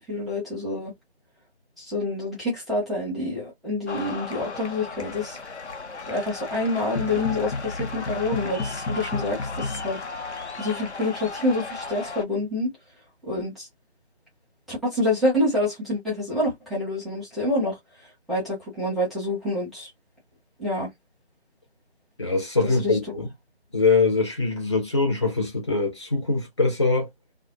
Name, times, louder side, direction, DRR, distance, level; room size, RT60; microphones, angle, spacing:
voice 1, 0.1-0.9 1.8-5.4 6.1-10.0 10.6-12.7 13.2-13.7 14.7-19.9 20.6-20.9 22.6-23.0, left 1 dB, ahead, 0.6 m, -27 dB
sound 1, 3.9-12.2, left 3 dB, 85° left, 0.9 m, -33 dB
voice 2, 22.2-23.3 23.7-27.1, left 3 dB, 25° left, 0.9 m, -23 dB
2.5 x 2.3 x 2.6 m
figure-of-eight pair, 165°, 33 cm